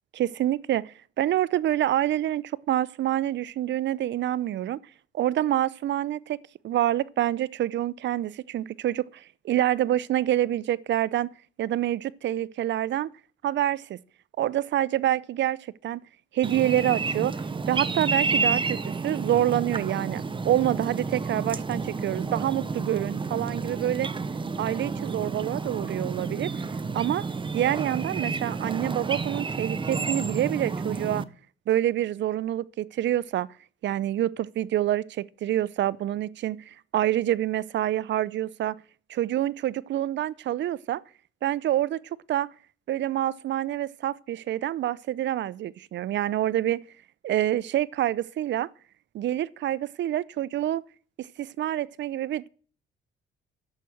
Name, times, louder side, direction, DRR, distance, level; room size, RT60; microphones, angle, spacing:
voice 1, 0.1-4.8 5.1-11.3 11.6-13.1 13.4-14.0 14.4-16.0 16.3-17.3 17.7-24.1 24.6-26.5 26.9-27.3 27.5-31.2 31.7-33.5 33.8-38.8 39.1-41.0 41.4-42.0 42.3-42.5 42.9-46.8 47.2-48.7 49.1-50.8 51.2-52.5, right 12 dB, 65° right, 0.6 m, -27 dB
sound 1, 16.4-31.2, right 4 dB, 25° right, 0.8 m, -30 dB
11.5 x 7.7 x 8.5 m
cardioid pair, 90°, 20 cm